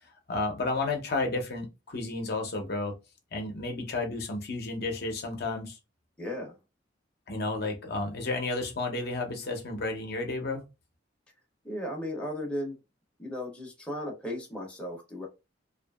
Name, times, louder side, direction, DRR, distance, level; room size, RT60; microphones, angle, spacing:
voice 1, 0.3-2.9 3.3-5.8 7.3-10.6, left 2 dB, 55° left, 0.6 m, -32 dB
voice 2, 6.2-6.6 11.6-12.8 13.2-15.3, left 1 dB, 5° left, 0.6 m, -35 dB
2.7 x 2.4 x 2.3 m
head